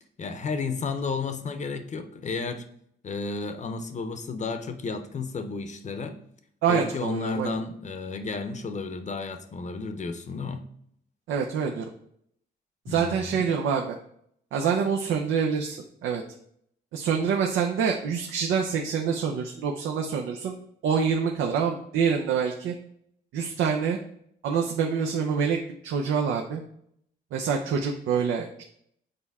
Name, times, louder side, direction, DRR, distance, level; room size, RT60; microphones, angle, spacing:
voice 1, 0.2-2.6 3.0-6.2 6.7-10.6 12.9-13.5, left 4 dB, 35° left, 9 dB, 0.7 m, -32 dB
voice 2, 6.6-7.6 11.3-11.9 12.9-14.0 14.5-16.2 16.9-20.5 20.8-22.7 23.3-24.0 24.4-25.6 25.8-26.6 27.3-28.6, right 6 dB, 80° right, 2 dB, 0.6 m, -26 dB
6.8 x 4.3 x 3.5 m, 0.69 s
cardioid pair, 90°, 20 cm